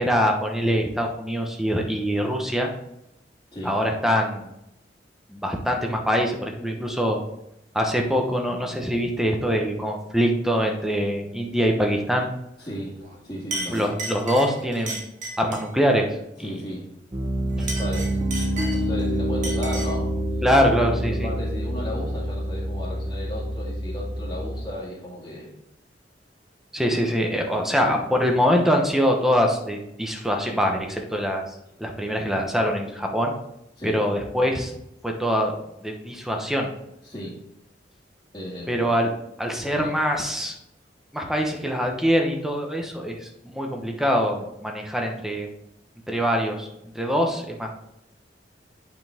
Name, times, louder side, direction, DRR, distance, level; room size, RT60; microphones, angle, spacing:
voice 1, 0.0-2.7 3.6-4.5 5.3-7.2 7.7-12.3 13.7-15.0 15.4-16.5 20.4-21.3 26.7-31.4 31.8-33.3 33.8-34.7 35.0-35.5 35.8-36.7 38.7-39.1 39.4-40.5 41.1-45.5 46.1-46.7 46.9-47.7, equal, ahead, 2 dB, 1.1 m, -23 dB
voice 2, 12.6-13.9 16.4-16.9 17.6-18.2 18.7-20.4 21.2-25.5 33.8-34.0 37.0-37.4 38.3-38.9 39.6-40.0, left 1 dB, 20° left, -9 dB, 2.0 m, -35 dB
Chink clink, 13.0-13.2 13.5-15.7 17.5-19.0 19.4-20.0, right 2 dB, 45° right, 1.9 m, -34 dB
Piano, 17.1-24.6, equal, 30° right, 1.3 m, -27 dB
8.8 x 5.6 x 3.6 m, 0.83 s
head